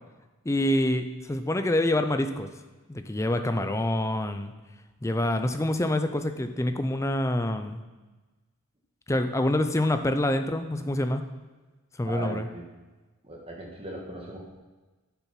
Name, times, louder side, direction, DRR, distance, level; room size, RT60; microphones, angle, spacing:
voice 1, 0.5-2.5 2.9-4.5 5.0-7.8 9.1-11.2 12.0-12.5, left 1 dB, 15° left, 8 dB, 0.4 m, -26 dB
voice 2, 12.0-12.6 13.2-14.5, right 2 dB, 25° right, -1 dB, 1.6 m, -38 dB
7.2 x 6.9 x 5.8 m, 1.2 s
head